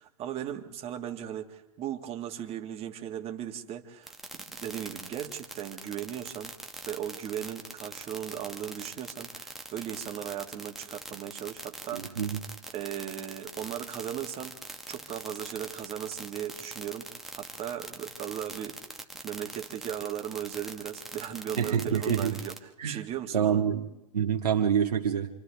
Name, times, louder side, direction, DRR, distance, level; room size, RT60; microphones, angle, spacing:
voice 1, 0.0-6.5 6.9-12.2 12.7-14.6 14.9-17.1 17.3-18.8 19.2-22.5 22.8-23.6, right 10 dB, 30° right, 1.9 m, -37 dB
sound 1, 4.1-22.6, right 1 dB, ahead, 1.4 m, -42 dB
voice 2, 11.9-12.4 21.6-22.4 22.8-23.0 23.3-23.9 24.1-25.3, right 8 dB, 85° right, 1.9 m, -27 dB
28.5 x 27.5 x 3.5 m
hypercardioid pair, 115°, 20 cm